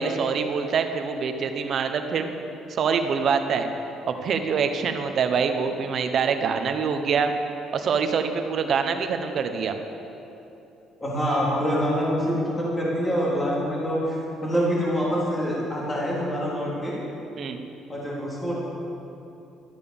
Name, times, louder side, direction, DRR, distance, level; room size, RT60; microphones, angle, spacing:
voice 1, 0.0-2.3 2.7-3.7 4.1-7.3 7.7-9.8 17.4-17.6, right 6 dB, 50° right, 7 dB, 1.0 m, -25 dB
voice 2, 11.0-17.0 17.9-18.6, equal, 15° left, -5 dB, 3.2 m, -25 dB
12.5 x 9.1 x 7.0 m, 2.9 s
cardioid pair, 120°, 0 cm